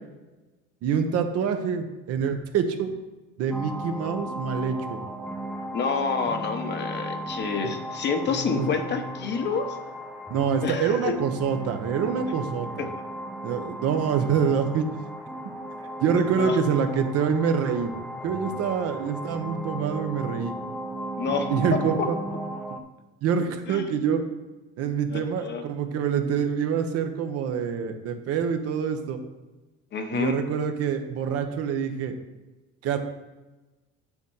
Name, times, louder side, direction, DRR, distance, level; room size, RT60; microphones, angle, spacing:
voice 1, 0.8-2.9 3.4-5.0 8.5-8.7 10.3-12.8 13.4-14.9 16.0-17.9 18.2-20.5 21.5-22.2 23.2-24.2 24.8-29.2 30.1-32.1 32.8-33.0, right 7 dB, 55° right, 7 dB, 1.1 m, -26 dB
sound 1, 3.5-22.8, equal, ahead, 0.6 m, -36 dB
voice 2, 5.7-9.8 10.6-11.1 12.8-12.9 16.4-16.6 21.2-22.1 23.7-23.9 25.1-25.6 29.9-30.4, left 5 dB, 35° left, 6 dB, 0.9 m, -28 dB
7.1 x 6.5 x 5.5 m, 1.1 s
cardioid pair, 135°, 30 cm